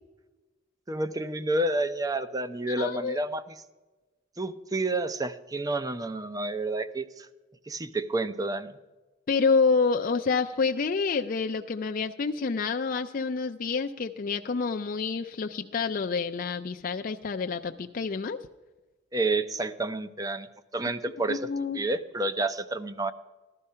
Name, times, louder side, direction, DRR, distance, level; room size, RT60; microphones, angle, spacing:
voice 1, 0.9-3.5 4.4-7.3 7.7-8.8 19.1-20.5 20.7-23.1, right 2 dB, 20° right, 11 dB, 0.5 m, -30 dB
voice 2, 2.7-3.2 9.3-18.4 21.3-21.8, left 4 dB, 45° left, 5 dB, 0.4 m, -28 dB
14.5 x 12.0 x 5.6 m, 1.2 s
head